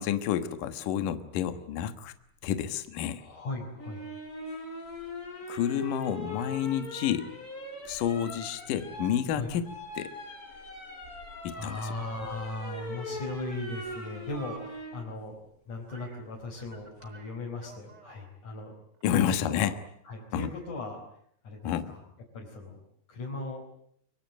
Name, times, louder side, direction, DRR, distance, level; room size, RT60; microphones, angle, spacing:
voice 1, 0.0-2.1 2.4-3.2 5.5-7.3 7.9-9.7 10.0-10.1 11.4-11.8 19.0-19.7 20.3-20.5 21.6-21.9, left 10 dB, 65° left, 9 dB, 2.7 m, -29 dB
voice 2, 3.1-4.0 9.3-9.5 10.5-10.8 11.5-15.4 15.7-18.7 19.1-19.7 20.0-21.0 21.4-22.0 22.3-22.8 23.1-23.8, left 2 dB, 50° left, -3 dB, 6.1 m, -38 dB
sound 1, 3.8-15.0 16.6-17.1, equal, 20° left, 5.0 m, -41 dB
Motor vehicle (road) / Siren, 9.7-14.6 14.9-15.0 15.9-16.2 16.6-18.2 18.9-19.0, right 3 dB, 25° right, 3.5 m, -51 dB
25.5 x 24.0 x 9.2 m, 0.68 s
omnidirectional pair, 4.7 m